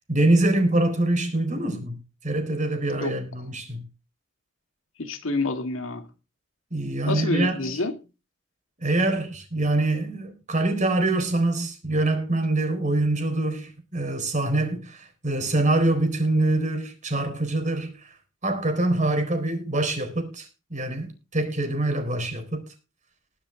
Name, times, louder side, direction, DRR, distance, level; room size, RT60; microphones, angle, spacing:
voice 1, 0.1-3.9 6.7-7.8 8.8-18.1 18.4-22.7, right 2 dB, 40° right, 4.1 m, -25 dB
voice 2, 5.0-6.1 7.1-7.9, left 3 dB, 90° left, 2.0 m, -27 dB
21.0 x 7.1 x 3.8 m
head